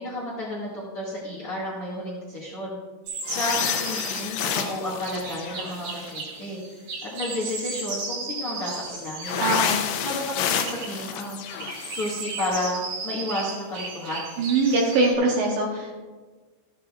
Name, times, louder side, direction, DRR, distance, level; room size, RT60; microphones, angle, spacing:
voice 1, 0.0-2.8 3.3-6.6 7.0-9.4 10.0-11.4 11.9-14.3, left 1 dB, 65° left, -5 dB, 1.3 m, -32 dB
sound 1, 3.1-15.1, right 3 dB, 55° right, 4.0 m, -35 dB
sound 2, 3.2-6.3 9.2-12.3, left 8 dB, 85° left, 2.8 m, -29 dB
voice 2, 9.4-9.8 14.4-16.0, right 3 dB, 75° right, -1 dB, 2.6 m, -22 dB
14.5 x 9.7 x 2.4 m, 1.4 s
omnidirectional pair, 6.0 m